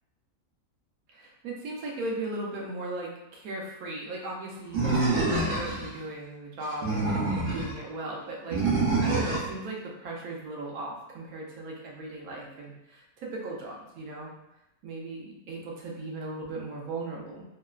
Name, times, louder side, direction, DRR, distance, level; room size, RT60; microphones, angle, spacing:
voice 1, 1.1-8.6 9.0-14.3 14.8-17.4, right 2 dB, 75° right, -2 dB, 1.1 m, -37 dB
Animal, 4.7-5.9 6.6-7.7 8.5-9.5, right 3 dB, 55° right, 0.6 m, -26 dB
2.9 x 2.1 x 2.3 m, 0.89 s
omnidirectional pair, 1.6 m